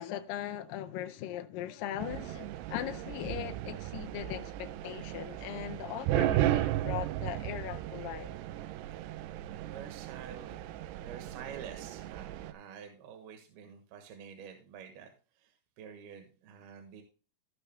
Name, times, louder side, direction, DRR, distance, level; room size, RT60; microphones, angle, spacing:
voice 1, 0.0-8.3, left 11 dB, 80° left, 2.0 m, -39 dB
sound 1, 2.0-12.5, right 14 dB, 90° right, 2.7 m, -35 dB
voice 2, 9.6-10.6 11.0-17.0, right 7 dB, 75° right, 3.1 m, -48 dB
15.0 x 5.7 x 3.4 m
omnidirectional pair, 4.6 m